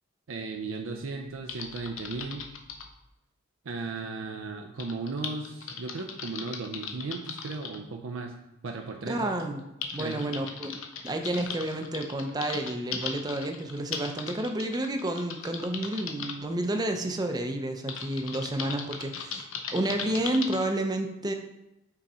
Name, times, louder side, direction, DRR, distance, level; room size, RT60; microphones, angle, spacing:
voice 1, 0.3-2.5 3.6-8.3 8.6-9.3 10.0-10.3, right 3 dB, 75° right, 2 dB, 0.5 m, -36 dB
Typing, 1.5-2.9 4.8-7.8 8.8-8.9 9.4-16.3 17.9-20.6, left 6 dB, 75° left, 0.7 m, -38 dB
voice 2, 9.1-9.6 9.9-10.8 11.0-19.4 19.7-21.3, right 1 dB, 20° right, 4 dB, 0.5 m, -30 dB
6.0 x 3.9 x 4.2 m, 0.90 s
head